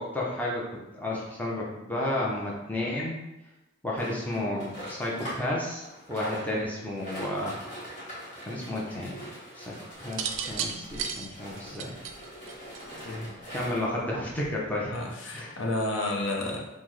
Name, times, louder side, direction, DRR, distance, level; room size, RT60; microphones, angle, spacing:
voice 1, 0.0-3.1 3.8-7.6 8.5-9.2 9.5-12.0 13.5-14.9 15.3-15.6, left 1 dB, 10° left, -5 dB, 0.6 m, -32 dB
sound 1, 4.0-5.5 5.8-14.0 14.7-14.8 15.0-15.1 15.5-15.6, equal, 40° left, 1.2 m, -42 dB
sound 2, 10.0-13.2 14.3-14.7, right 7 dB, 70° right, 0.4 m, -34 dB
voice 2, 14.9-16.7, left 1 dB, 65° left, -1 dB, 0.7 m, -31 dB
5.6 x 2.1 x 3.1 m, 0.94 s
head